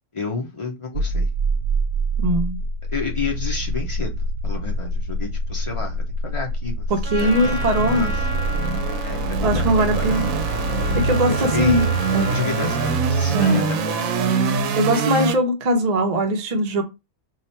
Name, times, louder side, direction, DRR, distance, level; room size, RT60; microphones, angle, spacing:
voice 1, 0.1-1.3 2.9-4.1 4.4-6.9 7.2-7.3 7.8-8.3 9.0-10.2 11.2-14.2, left 4 dB, 45° left, 0.4 m, -31 dB
sound 1, 0.9-15.3, right 3 dB, 80° right, 1.0 m, -24 dB
voice 2, 2.2-2.6 6.9-8.1 9.4-10.3 10.9-11.9 12.1-12.3 13.3-13.7 14.8-16.8, right 1 dB, 50° right, 0.5 m, -21 dB
Trumpet, 7.0-14.6, left 1 dB, 15° left, 0.7 m, -33 dB
2.9 x 2.4 x 4.1 m
omnidirectional pair, 1.4 m